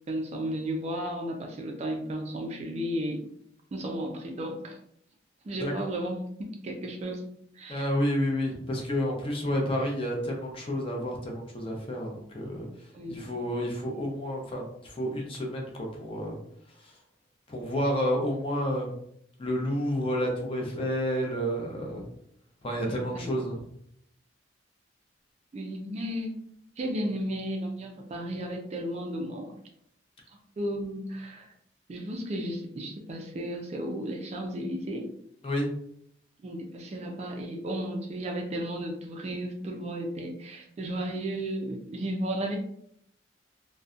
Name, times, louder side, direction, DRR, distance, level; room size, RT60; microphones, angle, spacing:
voice 1, 0.1-3.2 3.7-4.8 5.4-7.2 7.5-7.9 8.5-8.6 12.9-13.4 22.9-23.4 25.5-26.3 26.8-29.5 30.6-31.5 31.9-35.1 36.4-42.6, right 1 dB, 35° right, 2 dB, 0.3 m, -34 dB
voice 2, 7.7-12.7 13.1-16.4 16.8-16.9 17.5-18.9 19.4-22.0 22.6-23.6 35.4-35.7, equal, 30° left, 0 dB, 0.5 m, -30 dB
2.6 x 2.1 x 2.3 m, 0.71 s
head